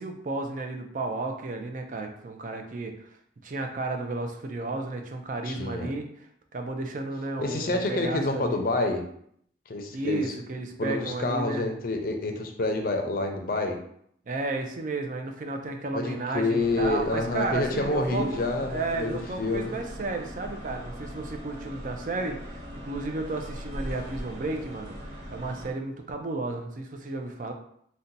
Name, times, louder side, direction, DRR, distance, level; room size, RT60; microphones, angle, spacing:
voice 1, 0.0-3.1 3.4-6.3 6.5-8.6 9.9-11.7 14.3-18.4 18.7-25.0 25.3-27.5, right 2 dB, 45° right, 4 dB, 0.4 m, -33 dB
voice 2, 5.4-5.9 7.4-9.0 9.7-10.3 10.8-13.8 15.9-19.7, left 2 dB, 50° left, 4 dB, 0.5 m, -28 dB
sound 1, 16.6-25.7, equal, 80° right, 1.0 m, -40 dB
2.7 x 2.2 x 3.8 m, 0.69 s
head